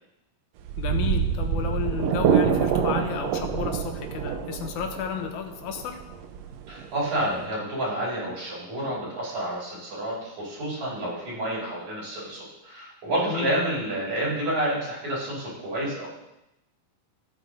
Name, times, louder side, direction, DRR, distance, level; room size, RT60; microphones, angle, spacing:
sound 1, 0.6-7.4, right 7 dB, 75° right, 1.6 m, -26 dB
voice 1, 0.8-6.0 13.2-13.6, left 8 dB, 70° left, 5 dB, 2.4 m, -32 dB
voice 2, 6.7-16.1, right 1 dB, 60° right, -8 dB, 5.6 m, -29 dB
15.5 x 8.7 x 3.9 m, 0.88 s
omnidirectional pair, 3.8 m